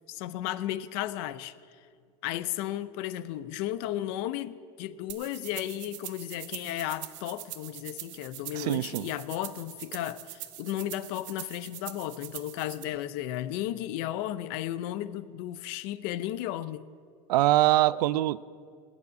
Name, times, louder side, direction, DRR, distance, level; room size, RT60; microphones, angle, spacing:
voice 1, 0.1-1.5 2.2-16.8, left 13 dB, 40° left, 0.6 m, -34 dB
sound 1, 5.1-12.8, right 15 dB, 50° right, 0.9 m, -43 dB
voice 2, 8.5-9.1 17.3-18.4, right 16 dB, 70° right, 0.5 m, -23 dB
18.5 x 7.2 x 9.4 m
supercardioid pair, 175°, 21 cm